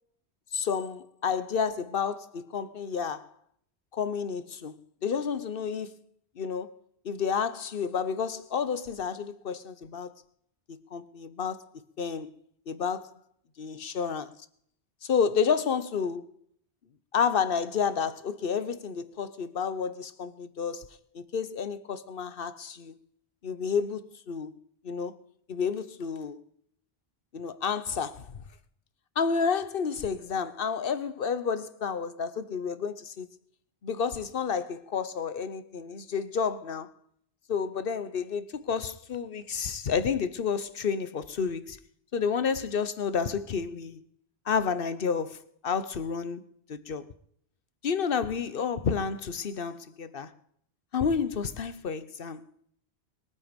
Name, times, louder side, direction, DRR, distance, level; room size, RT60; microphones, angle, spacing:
voice 1, 0.5-3.3 3.9-4.7 5.0-6.0 6.4-6.7 7.0-10.1 10.7-11.6 12.0-12.4 12.7-13.1 13.6-14.3 15.0-16.2 17.1-20.9 21.1-22.9 23.4-24.5 24.8-25.2 25.5-26.4 27.3-28.4 29.2-33.3 33.8-36.9 37.5-41.8 42.1-44.0 44.5-46.4 46.7-47.1 47.8-50.3 50.9-52.4, left 6 dB, 60° left, 1.1 m, -30 dB
22.0 x 9.0 x 5.2 m
omnidirectional pair, 1.1 m